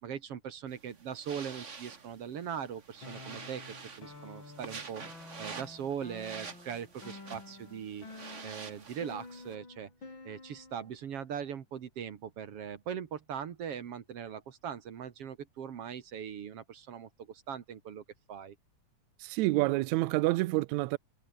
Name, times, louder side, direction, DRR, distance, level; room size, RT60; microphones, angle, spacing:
voice 1, 0.0-3.6 4.0-5.0 5.4-8.1 8.4-9.9 10.2-18.6, right 8 dB, 55° right, 2.3 m, -40 dB
sound 1, 0.7-9.5, right 5 dB, 30° right, 1.5 m, -48 dB
sound 2, 3.0-10.9, left 3 dB, 40° left, 6.3 m, -50 dB
voice 2, 19.2-21.0, right 20 dB, 75° right, 1.9 m, -28 dB
omnidirectional pair, 3.4 m